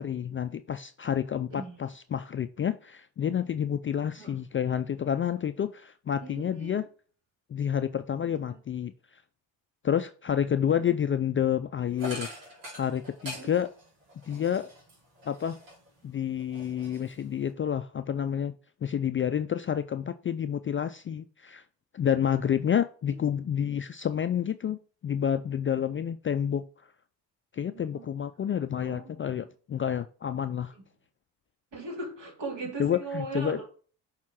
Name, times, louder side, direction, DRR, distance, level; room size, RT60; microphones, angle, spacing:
voice 1, 0.0-6.8 7.5-9.2 9.8-12.3 12.7-13.7 14.3-14.7 15.3-15.6 16.0-18.6 18.8-21.6 21.9-26.7 27.5-30.7 32.8-33.6, left 9 dB, 30° left, 10 dB, 0.3 m, -29 dB
voice 2, 6.2-6.8 8.2-8.9 10.7-11.0 13.3-13.6 27.7-28.1 28.8-29.5 31.7-33.7, right 3 dB, 60° right, 0 dB, 2.7 m, -39 dB
sound 1, 12.0-16.0 16.4-17.5, equal, 80° right, 2.6 m, -43 dB
6.3 x 3.7 x 5.7 m, 0.40 s
hypercardioid pair, 50°, 49 cm